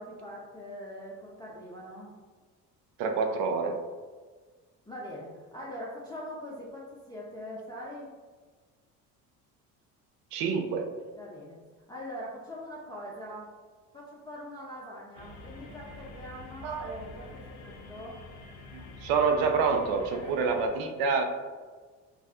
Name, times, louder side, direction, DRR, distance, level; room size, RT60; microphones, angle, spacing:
voice 1, 0.0-2.1 4.9-8.1 11.1-11.6 11.9-13.5 13.9-18.2 20.1-20.6, equal, 10° left, -7 dB, 0.4 m, -42 dB
voice 2, 3.0-3.8 10.3-10.9 16.6-16.9 18.7-21.2, right 5 dB, 70° right, 5 dB, 0.5 m, -27 dB
sound 1, 15.2-20.7, left 3 dB, 75° left, 0.5 m, -47 dB
2.5 x 2.3 x 2.3 m, 1.4 s
supercardioid pair, 75°, 39 cm